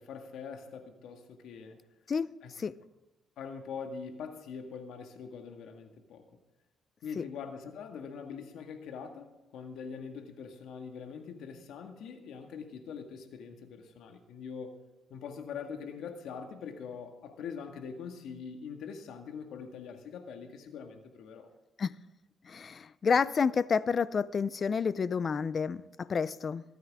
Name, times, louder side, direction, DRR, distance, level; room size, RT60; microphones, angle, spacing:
voice 1, 0.0-1.8 2.4-2.5 3.4-6.3 7.0-14.8 15.1-21.5, left 6 dB, 80° left, 1.8 m, -43 dB
voice 2, 22.5-26.6, left 5 dB, 45° left, 0.5 m, -29 dB
23.0 x 9.4 x 3.6 m
cardioid pair, 90°, 0 cm